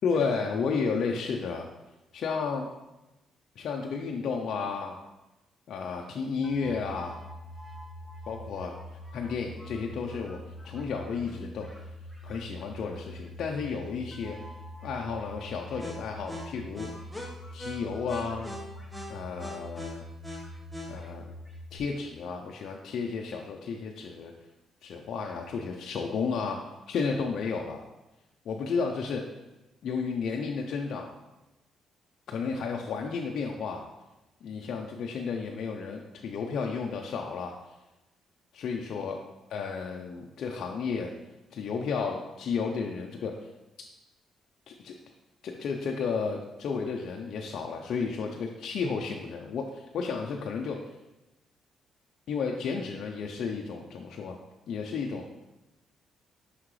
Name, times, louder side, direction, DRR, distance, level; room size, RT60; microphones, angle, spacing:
voice 1, 0.0-1.7 2.1-2.7 3.6-5.0 5.7-7.2 8.3-8.7 9.1-10.4 10.6-11.7 12.2-14.4 14.8-16.9 17.5-18.5 19.1-20.0 20.9-21.3 21.7-24.3 24.8-27.8 28.5-29.3 29.8-31.1 32.3-33.8 34.4-37.5 38.5-39.2 39.5-41.1 41.5-43.3 44.7-44.9 45.4-50.8 52.3-54.4 54.7-55.2, left 5 dB, 70° left, 1 dB, 0.5 m, -32 dB
sound 1, 6.4-21.8, left 1 dB, 5° right, 1.1 m, -42 dB
5.8 x 5.7 x 3.2 m, 1.0 s
cardioid pair, 90°, 0 cm